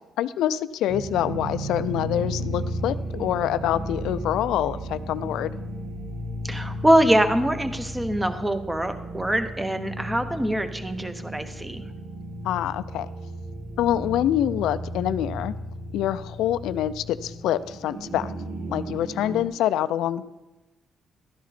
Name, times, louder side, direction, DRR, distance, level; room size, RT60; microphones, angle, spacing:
voice 1, 0.2-5.5 12.4-13.1 13.8-15.5 15.9-18.3 18.7-20.2, left 11 dB, 85° left, 14 dB, 0.4 m, -26 dB
sound 1, 0.9-19.5, right 1 dB, 75° right, 2.0 m, -34 dB
voice 2, 6.4-11.8, right 1 dB, 10° right, 9 dB, 1.0 m, -23 dB
12.5 x 10.5 x 4.2 m, 1.1 s
cardioid pair, 90°, 0 cm